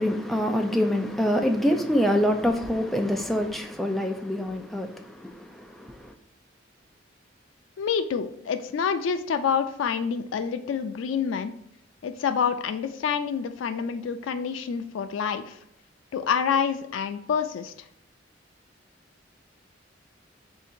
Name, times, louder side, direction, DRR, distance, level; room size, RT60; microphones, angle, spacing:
voice 1, 0.0-6.1, equal, ahead, 0.3 m, -25 dB
voice 2, 7.8-11.5 12.0-15.6 16.1-17.7, left 7 dB, 90° left, 0.3 m, -27 dB
3.5 x 2.7 x 4.1 m
head